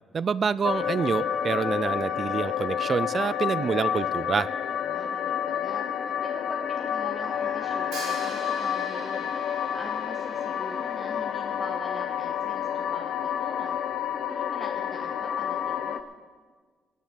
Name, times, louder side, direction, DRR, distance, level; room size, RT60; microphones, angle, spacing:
voice 1, 0.1-4.5, right 6 dB, 45° right, 19 dB, 0.4 m, -27 dB
sound 1, 0.6-16.0, left 9 dB, 70° left, 0.7 m, -29 dB
voice 2, 4.8-9.3 9.7-13.8 14.3-16.0, left 1 dB, 5° left, 0 dB, 1.4 m, -43 dB
sound 2, 6.9-11.6, right 1 dB, 25° right, 2.2 m, -47 dB
Hi-hat, 7.9-11.9, right 3 dB, 90° right, 3.9 m, -43 dB
16.5 x 7.4 x 7.5 m, 1.5 s
cardioid pair, 90°, 0 cm